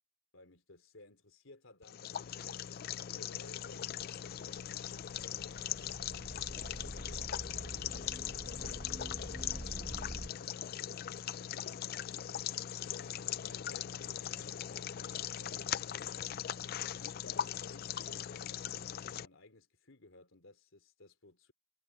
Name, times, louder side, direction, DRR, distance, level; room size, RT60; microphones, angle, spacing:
voice 1, 0.3-7.3 7.9-8.2 8.5-10.5 11.2-12.4 13.0-16.6 16.9-21.5, left 2 dB, 85° left, 3.2 m, -59 dB
sound 1, 1.8-19.3, left 10 dB, 50° left, 0.4 m, -40 dB
sound 2, 3.5-10.3, right 1 dB, 10° right, 0.6 m, -46 dB
head